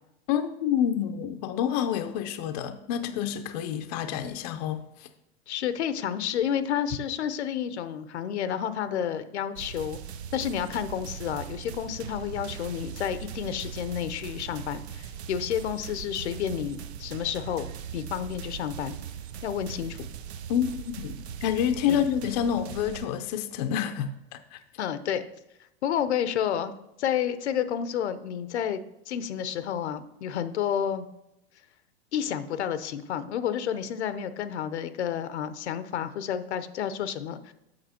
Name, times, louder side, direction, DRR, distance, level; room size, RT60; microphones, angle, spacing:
voice 1, 0.3-5.1 20.5-24.6, left 9 dB, 40° left, 9 dB, 0.6 m, -28 dB
voice 2, 5.5-10.0 10.3-19.0 19.4-20.1 21.9-22.0 24.8-25.3 25.8-26.7 27.0-28.8 29.1-31.1 32.1-37.5, left 9 dB, 85° left, 12 dB, 0.8 m, -30 dB
sound 1, 9.6-23.1, right 8 dB, 75° right, 0.7 m, -40 dB
7.9 x 6.1 x 4.3 m, 0.87 s
supercardioid pair, 155°, 33 cm